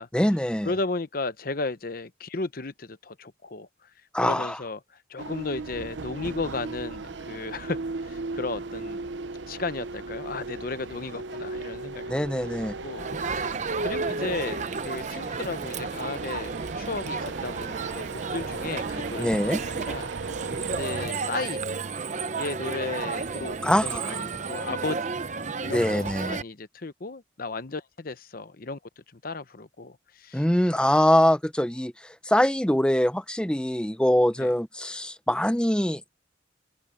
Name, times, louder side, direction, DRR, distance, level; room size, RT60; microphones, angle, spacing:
voice 1, 0.1-0.7 4.1-4.6 12.1-12.8 19.2-19.6 23.6-24.1 25.7-26.4 30.3-36.0, left 1 dB, 5° left, 0.7 m, -23 dB
voice 2, 0.6-3.7 4.2-4.8 5.1-9.0 9.5-12.1 12.8-13.5 13.8-14.6 14.8-20.1 20.8-21.6 22.3-24.9 25.6-28.8 29.1-30.4 34.4-34.5, left 3 dB, 55° left, 0.9 m, -34 dB
sound 1, 5.2-21.1, right 4 dB, 90° right, 0.7 m, -37 dB
Crowd, 13.0-26.4, right 4 dB, 40° right, 0.7 m, -32 dB
open air
head